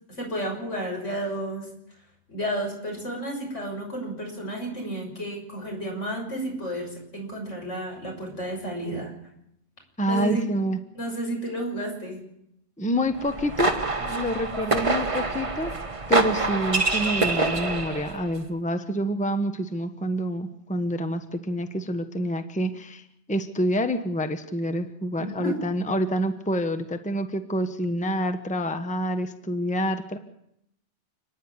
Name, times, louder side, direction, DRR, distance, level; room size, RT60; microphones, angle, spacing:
voice 1, 0.1-1.7 2.3-9.1 10.1-10.5 10.9-12.2 25.2-25.6, right 1 dB, 80° left, 1 dB, 6.7 m, -32 dB
voice 2, 10.0-10.8 12.8-13.7 14.0-15.7 16.1-23.0 23.3-30.2, equal, 5° left, 8 dB, 1.1 m, -27 dB
sound 1, 13.2-18.2, right 3 dB, 30° right, 1.3 m, -26 dB
29.5 x 10.0 x 9.7 m, 0.77 s
omnidirectional pair, 1.2 m